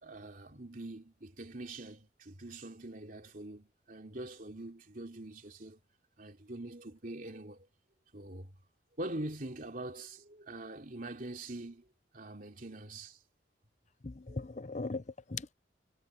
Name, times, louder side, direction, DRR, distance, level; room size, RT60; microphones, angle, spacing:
voice 1, 0.0-5.8 6.2-7.7 8.1-8.6 9.0-11.8 12.1-13.2 14.3-14.4, right 1 dB, 45° right, 3.3 m, -44 dB
voice 2, 14.0-15.5, left 3 dB, 40° left, 0.7 m, -39 dB
head